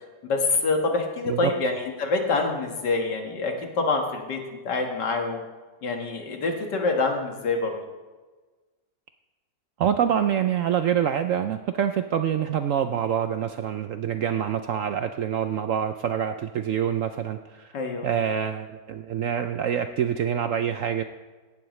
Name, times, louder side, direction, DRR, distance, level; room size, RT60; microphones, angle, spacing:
voice 1, 0.2-4.4 4.6-5.4 5.8-7.8 17.7-18.1, left 3 dB, 80° left, 2 dB, 2.2 m, -26 dB
voice 2, 9.8-17.8 18.0-21.0, right 9 dB, 70° right, 8 dB, 0.7 m, -26 dB
16.5 x 11.5 x 3.2 m, 1.3 s
omnidirectional pair, 1.8 m